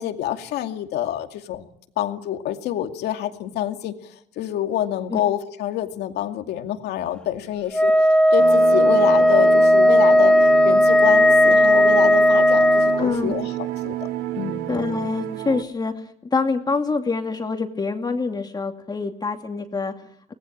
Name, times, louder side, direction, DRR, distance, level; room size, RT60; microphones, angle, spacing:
voice 1, 0.0-1.7 2.0-4.0 4.4-13.9 14.3-14.6, left 11 dB, 75° left, 6 dB, 2.4 m, -27 dB
Wind instrument woodwind instrument, 7.7-13.0, left 1 dB, 5° left, 1.3 m, -15 dB
sound 1, 8.4-15.6, right 14 dB, 80° right, 1.8 m, -29 dB
voice 2, 13.0-13.4 14.7-15.9 16.3-19.9, left 4 dB, 25° left, 4 dB, 2.6 m, -25 dB
25.5 x 19.0 x 8.9 m, 0.73 s
cardioid pair, 110°, 17 cm